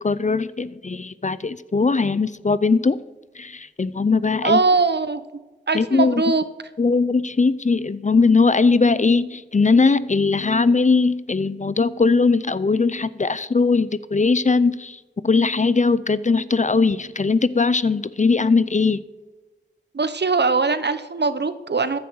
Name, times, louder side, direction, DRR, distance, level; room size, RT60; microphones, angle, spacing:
voice 1, 0.0-3.0 3.4-4.6 5.7-6.2 6.8-19.0, left 4 dB, 40° left, 16 dB, 0.5 m, -20 dB
voice 2, 4.4-5.2 5.7-6.4 19.9-22.0, right 4 dB, 60° right, 12 dB, 0.9 m, -21 dB
14.5 x 10.0 x 4.7 m, 1.2 s
wide cardioid pair, 55°, 19 cm